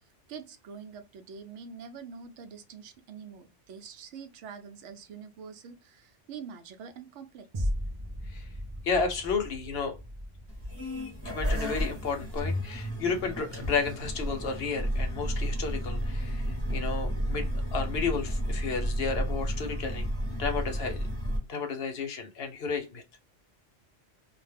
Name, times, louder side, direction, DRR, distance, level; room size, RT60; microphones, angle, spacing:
voice 1, 0.3-7.7, right 6 dB, 75° right, 0.9 m, -45 dB
sound 1, 7.5-16.1 16.6-16.7, equal, 45° right, 0.3 m, -39 dB
voice 2, 8.8-9.9 11.2-17.5 17.7-20.1 20.4-21.1 21.5-23.0, left 5 dB, 60° left, 0.9 m, -32 dB
sound 2, 10.5-21.4, equal, 15° right, 0.9 m, -32 dB
2.4 x 2.1 x 3.2 m
omnidirectional pair, 1.2 m